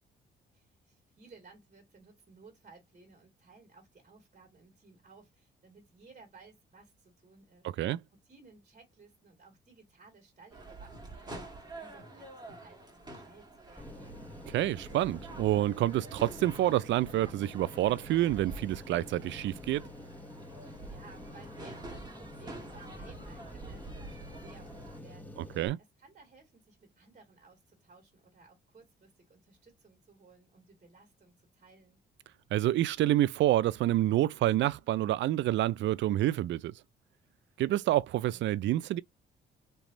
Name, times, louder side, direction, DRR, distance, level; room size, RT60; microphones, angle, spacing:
voice 1, 0.5-8.0 8.2-14.2 20.5-32.0, right 4 dB, 40° right, 2.0 m, -58 dB
sound 1, 10.5-25.0, right 2 dB, 20° right, 1.7 m, -47 dB
sound 2, 13.8-25.7, left 1 dB, 10° left, 1.0 m, -48 dB
voice 2, 14.5-19.9 25.6-25.8 32.5-36.7 37.6-39.0, right 14 dB, 70° right, 0.4 m, -28 dB
3.3 x 3.0 x 2.6 m
cardioid pair, 90°, 20 cm